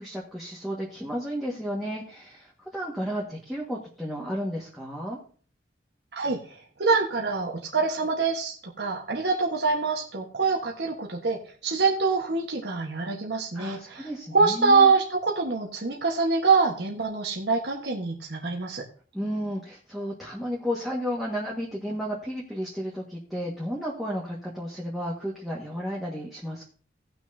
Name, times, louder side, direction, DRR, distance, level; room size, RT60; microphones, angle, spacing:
voice 1, 0.0-5.2 13.5-14.9 19.1-26.6, equal, ahead, -5 dB, 1.6 m, -33 dB
voice 2, 6.1-18.8, right 4 dB, 65° right, -1 dB, 1.3 m, -25 dB
17.5 x 6.2 x 2.7 m, 0.42 s
head